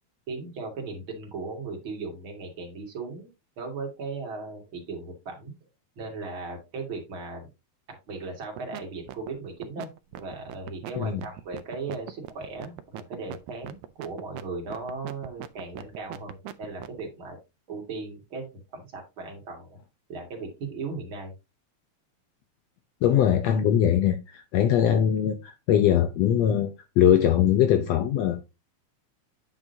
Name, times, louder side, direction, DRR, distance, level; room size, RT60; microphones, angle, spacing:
voice 1, 0.3-3.3 3.6-5.5 6.0-7.5 8.1-17.4 17.7-19.8 20.1-21.3, right 3 dB, 45° right, 2.6 m, -37 dB
sound 1, 8.4-8.8 9.1-17.0, right 13 dB, 85° right, 2.1 m, -39 dB
voice 2, 23.0-26.7 27.0-28.4, left 10 dB, 75° left, 1.7 m, -21 dB
9.1 x 6.1 x 2.6 m
omnidirectional pair, 3.4 m